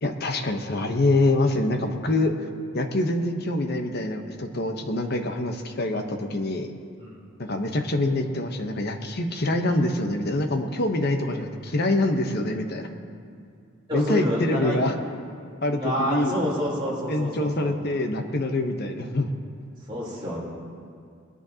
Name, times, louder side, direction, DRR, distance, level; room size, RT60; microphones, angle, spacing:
voice 1, 0.0-2.3 2.7-6.7 7.4-12.9 13.9-14.9 15.6-16.5 17.1-19.3, left 2 dB, 50° left, 5 dB, 1.0 m, -25 dB
voice 2, 13.9-14.8 15.7-17.7 19.9-20.4, equal, 25° right, -6 dB, 3.7 m, -28 dB
20.5 x 10.5 x 2.9 m, 2.3 s
head